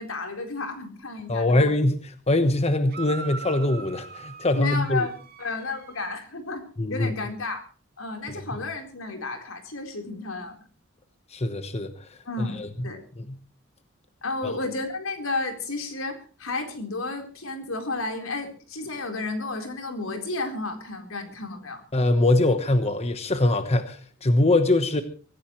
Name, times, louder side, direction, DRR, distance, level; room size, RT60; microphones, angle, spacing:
voice 1, 0.0-1.7 4.6-5.1 5.4-6.6 6.9-7.6 8.0-10.6 12.3-13.1 14.2-21.8, left 3 dB, 80° left, 4 dB, 4.1 m, -32 dB
voice 2, 1.3-5.1 6.8-7.1 11.3-11.9 12.4-12.9 13.2-13.4 14.4-14.5 21.9-25.0, left 2 dB, 30° left, 9 dB, 1.1 m, -23 dB
sound 1, 2.9-6.2, right 5 dB, 50° right, 5.0 m, -41 dB
24.0 x 15.0 x 3.2 m, 0.38 s
head